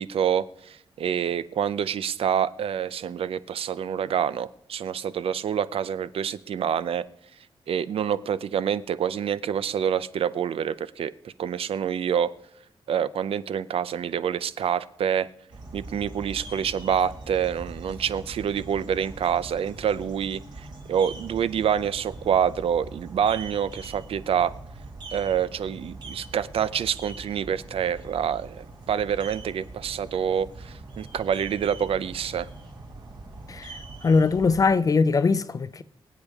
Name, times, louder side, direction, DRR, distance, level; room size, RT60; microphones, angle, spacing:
voice 1, 0.0-7.0 7.7-12.3 12.9-15.3 15.7-24.5 25.1-32.5, right 8 dB, 75° right, 0.5 m, -27 dB
sound 1, 15.5-34.6, right 2 dB, 50° right, 2.1 m, -42 dB
voice 2, 33.5-35.8, left 4 dB, 35° left, 0.5 m, -22 dB
24.0 x 8.3 x 3.5 m
wide cardioid pair, 145°, 10 cm